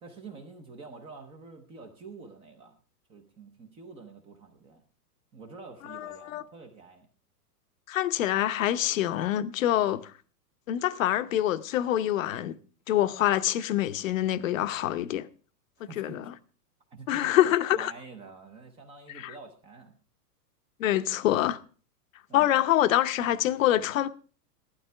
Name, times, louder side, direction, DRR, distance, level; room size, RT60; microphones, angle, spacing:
voice 1, 0.0-2.8 3.1-4.8 5.3-7.1 15.8-16.2 16.9-19.9 22.3-22.5, right 4 dB, 10° right, 0.7 m, -47 dB
voice 2, 5.9-6.4 7.9-10.1 10.7-12.6 12.9-15.3 15.8-16.2 17.1-17.9 19.1-19.3 20.8-21.6 22.3-24.1, left 13 dB, 55° left, 0.9 m, -26 dB
16.0 x 12.5 x 3.3 m
supercardioid pair, 170°, 48 cm